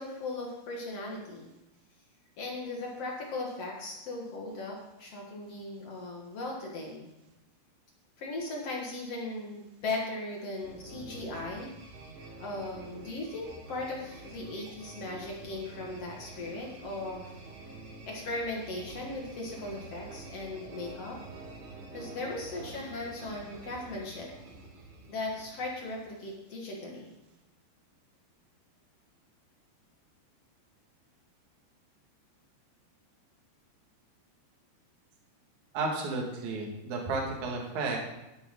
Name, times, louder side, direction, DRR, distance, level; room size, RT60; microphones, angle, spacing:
voice 1, 0.0-1.5 2.4-7.1 8.2-11.7 12.2-17.2 18.1-21.2 21.9-24.3 25.1-27.1, left 2 dB, 60° left, -1 dB, 1.7 m, -38 dB
sound 1, 10.6-26.1, right 2 dB, 80° right, 4.8 m, -48 dB
voice 2, 35.7-38.0, right 3 dB, 50° right, -1 dB, 2.7 m, -32 dB
11.5 x 10.0 x 3.7 m, 0.95 s
omnidirectional pair, 5.2 m